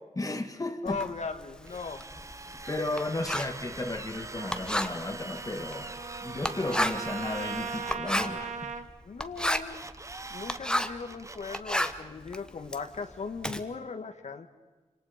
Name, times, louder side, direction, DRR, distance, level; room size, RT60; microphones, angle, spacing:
voice 1, 0.2-1.0 2.7-5.9 6.2-8.7, left 2 dB, 30° left, 1.8 m, -34 dB
voice 2, 0.8-2.1 9.0-9.9 10.3-14.5, left 4 dB, 65° left, 1.8 m, -38 dB
Writing, 0.9-11.1 11.4-13.6, left 1 dB, 5° left, 1.3 m, -33 dB
Drill, 1.6-8.0 9.4-10.6 11.0-12.0, right 2 dB, 25° right, 0.8 m, -43 dB
Trumpet, 4.4-8.9, right 5 dB, 80° right, 1.3 m, -39 dB
28.0 x 26.5 x 5.1 m
wide cardioid pair, 90°, 13 cm